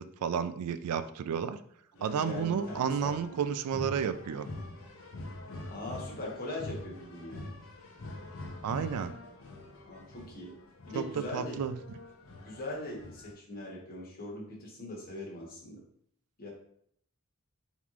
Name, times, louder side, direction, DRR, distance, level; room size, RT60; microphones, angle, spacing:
voice 1, 0.0-1.6 2.0-4.5 8.6-9.1 10.9-11.0 11.3-11.8, right 7 dB, 85° right, 13 dB, 0.3 m, -31 dB
voice 2, 1.9-3.4 5.7-7.5 9.8-10.5 10.9-11.6 12.4-15.8 16.4-16.5, left 1 dB, 40° left, -2 dB, 1.2 m, -41 dB
sound 1, 2.0-13.3, left 2 dB, 65° left, 0.7 m, -45 dB
3.6 x 3.1 x 3.6 m, 0.66 s
head